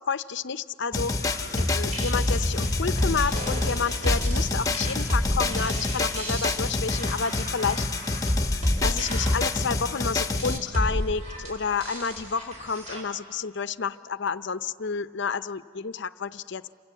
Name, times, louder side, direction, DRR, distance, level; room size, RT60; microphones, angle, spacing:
voice 1, 0.0-7.8 8.5-16.7, left 5 dB, 55° left, 14 dB, 0.6 m, -30 dB
sound 1, 0.9-10.6, left 3 dB, 15° left, 1.0 m, -29 dB
sound 2, 1.1-13.0, left 1 dB, 35° right, 6.4 m, -29 dB
28.5 x 24.0 x 8.2 m, 2.3 s
head